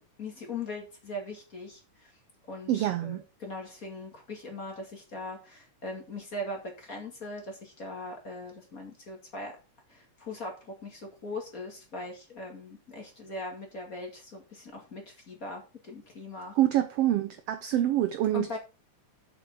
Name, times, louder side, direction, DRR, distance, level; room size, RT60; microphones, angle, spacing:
voice 1, 0.0-2.1 2.5-9.5 9.9-16.6 18.3-18.6, left 2 dB, 30° left, 2.3 m, -40 dB
voice 2, 2.7-3.2 16.6-18.6, right 13 dB, 75° right, 1.4 m, -26 dB
7.4 x 7.1 x 5.6 m
omnidirectional pair, 3.4 m